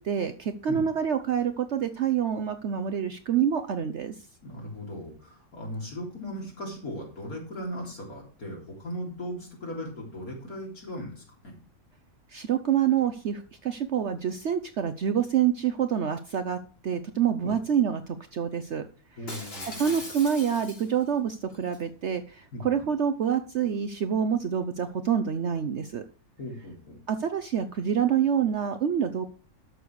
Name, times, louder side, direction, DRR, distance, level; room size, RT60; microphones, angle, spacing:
voice 1, 0.0-4.1 12.3-18.8 19.6-26.0 27.1-29.2, right 8 dB, 60° right, 9 dB, 1.0 m, -27 dB
voice 2, 4.4-11.5 17.4-17.6 19.2-20.0 22.5-22.8 26.4-27.0, equal, 80° left, -1 dB, 4.1 m, -38 dB
Shatter, 19.3-21.1 21.5-21.8, left 1 dB, 40° left, 3.4 m, -40 dB
12.5 x 6.7 x 4.7 m, 0.41 s
omnidirectional pair, 1.5 m